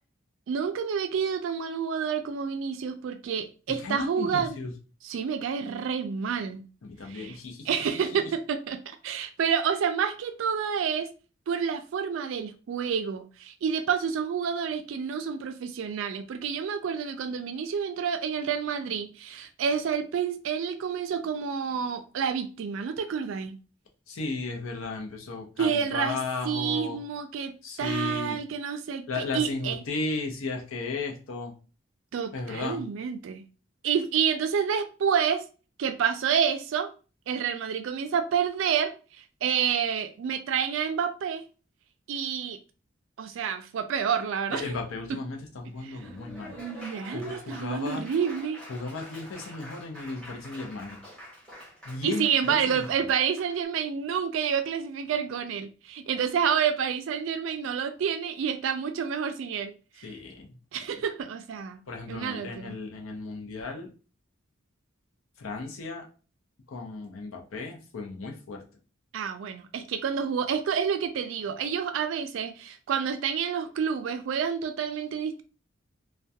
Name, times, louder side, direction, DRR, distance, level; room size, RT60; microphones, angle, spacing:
voice 1, 0.5-4.6 5.0-6.6 7.1-7.4 7.7-11.1 11.5-23.6 25.6-26.2 26.4-27.5 27.8-29.8 32.1-33.4 33.8-35.4 35.8-36.9 37.3-41.4 42.1-42.6 43.2-44.8 45.8-45.9 46.6-48.6 52.0-60.1 60.7-61.8 62.1-62.7 69.1-75.4, right 7 dB, 65° right, 0.3 m, -29 dB
voice 2, 3.8-4.7 6.8-8.2 24.1-27.0 27.6-28.4 29.1-31.5 32.3-32.8 44.5-48.0 48.7-51.0 51.8-52.8 60.0-60.6 61.9-63.9 65.4-66.1 66.7-68.6, left 3 dB, 80° left, 0.6 m, -35 dB
Laughter / Applause, 45.7-53.6, left 1 dB, 5° left, 0.8 m, -46 dB
2.3 x 2.2 x 2.6 m
head